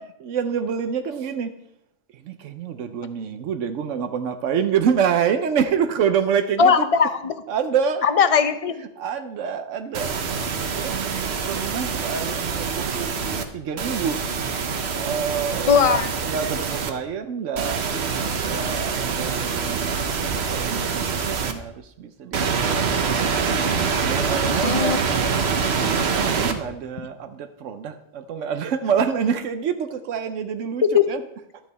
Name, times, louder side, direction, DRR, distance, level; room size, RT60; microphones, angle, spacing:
voice 1, 0.0-1.5 2.1-6.9 7.5-8.1 8.8-14.2 14.9-23.4 24.0-25.0 25.8-31.2, right 7 dB, 85° right, 1.0 m, -27 dB
voice 2, 6.6-7.3 8.0-8.8 15.7-16.1 24.6-25.0 30.9-31.0, left 6 dB, 35° left, 0.6 m, -18 dB
sound 1, 9.9-13.4 13.8-16.9 17.6-21.5 22.3-26.5, right 5 dB, 60° right, 1.1 m, -25 dB
11.5 x 8.4 x 4.0 m
omnidirectional pair, 1.2 m